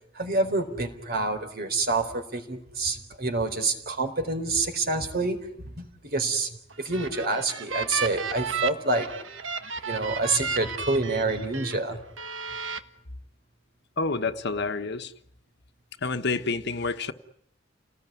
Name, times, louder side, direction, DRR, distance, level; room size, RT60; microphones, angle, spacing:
voice 1, 0.1-5.4 5.8-9.1 9.9-12.0, right 2 dB, 55° right, 4.1 m, -27 dB
sound 1, 6.7-11.8 12.2-12.8, right 6 dB, 80° right, 1.5 m, -33 dB
voice 2, 14.0-15.1 16.0-17.1, left 3 dB, 60° left, 1.4 m, -28 dB
30.0 x 19.5 x 9.4 m
head